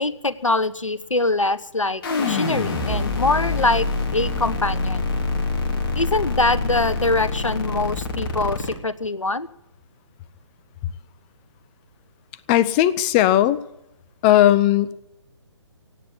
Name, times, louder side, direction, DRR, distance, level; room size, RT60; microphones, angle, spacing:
voice 1, 0.0-3.9 4.1-5.0 6.0-9.5, left 2 dB, 90° left, 17 dB, 1.0 m, -23 dB
sound 1, 2.0-8.7, left 3 dB, 45° left, 3.1 m, -25 dB
voice 2, 12.5-13.6 14.2-14.9, left 13 dB, 20° left, 18 dB, 0.5 m, -17 dB
17.0 x 8.7 x 9.7 m, 0.83 s
figure-of-eight pair, 135°, 16 cm